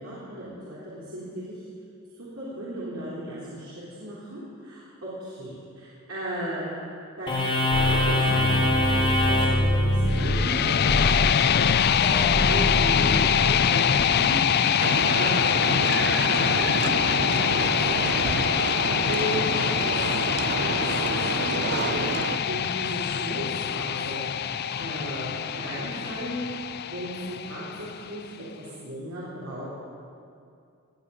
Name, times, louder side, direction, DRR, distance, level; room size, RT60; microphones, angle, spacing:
voice 1, 0.0-1.6 2.1-3.7 4.0-6.6 7.2-7.3 7.7-11.7 12.4-17.6 17.9-18.1 19.1-20.8 21.0-22.1 22.5-24.2 24.8-26.5 26.8-29.7, equal, 65° right, -9 dB, 3.7 m, -36 dB
sound 1, 7.3-14.0, left 1 dB, 25° left, 2.6 m, -24 dB
sound 2, 10.1-28.1, left 8 dB, 50° left, 0.4 m, -24 dB
sound 3, 14.8-22.4, right 5 dB, 50° right, 0.5 m, -30 dB
19.0 x 9.8 x 7.1 m, 2.4 s
head